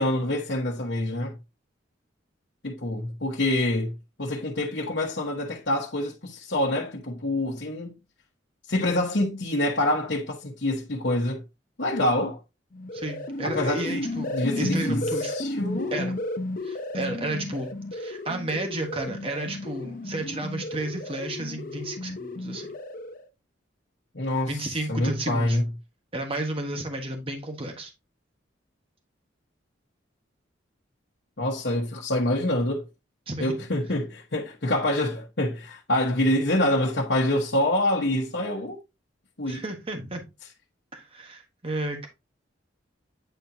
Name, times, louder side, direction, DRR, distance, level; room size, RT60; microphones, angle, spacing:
voice 1, 0.0-1.4 2.6-7.9 8.7-11.4 11.8-12.4 13.4-14.0 14.3-16.1 24.1-24.5 24.9-25.6 31.4-32.9 33.4-38.8 39.4-39.6, left 1 dB, 65° left, 1.2 m, -26 dB
sound 1, 12.7-23.3, left 2 dB, 45° left, 0.8 m, -33 dB
voice 2, 12.9-15.3 15.9-16.1 16.6-22.7 24.5-25.6 26.1-27.9 33.3-33.6 39.5-40.3 40.9-42.1, right 2 dB, 30° right, 1.4 m, -32 dB
9.1 x 4.3 x 2.7 m
head